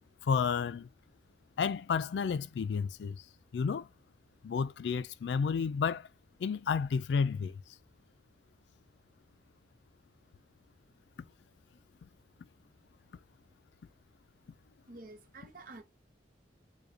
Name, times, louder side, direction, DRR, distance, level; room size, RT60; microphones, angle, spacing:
voice 1, 0.2-0.9 1.6-3.2 3.5-3.9 4.4-6.1 6.4-7.6 12.0-12.1, left 6 dB, 75° left, 0.3 m, -31 dB
voice 2, 14.9-15.8, right 2 dB, 50° right, 0.7 m, -49 dB
4.8 x 2.2 x 2.6 m
head